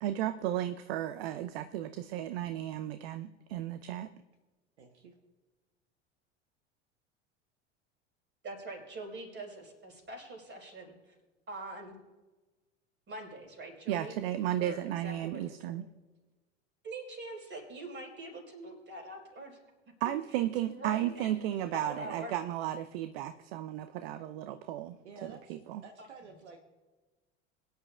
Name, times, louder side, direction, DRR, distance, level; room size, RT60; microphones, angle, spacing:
voice 1, 0.0-4.1 13.9-15.9 20.0-25.8, right 12 dB, 60° right, 11 dB, 0.6 m, -34 dB
voice 2, 4.8-5.1 25.0-26.6, right 4 dB, 75° right, 4 dB, 1.2 m, -51 dB
voice 3, 8.4-11.1 11.5-12.0 13.1-14.2 14.6-14.8 15.0-15.4 16.8-19.6 20.6-21.3 21.7-22.3 26.0-26.1, right 2 dB, 35° right, 1 dB, 4.6 m, -43 dB
22.5 x 10.5 x 2.4 m, 1.2 s
figure-of-eight pair, 75°, 34 cm